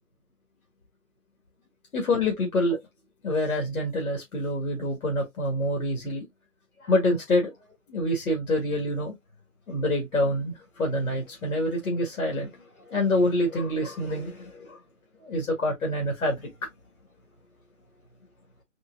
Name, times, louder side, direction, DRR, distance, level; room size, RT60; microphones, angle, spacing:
voice 1, 1.9-2.8 3.2-6.3 6.8-7.5 7.9-9.1 9.7-14.8 15.2-16.5, left 1 dB, 75° left, 1.7 m, -26 dB
3.9 x 3.6 x 2.3 m
hypercardioid pair, 165°, 42 cm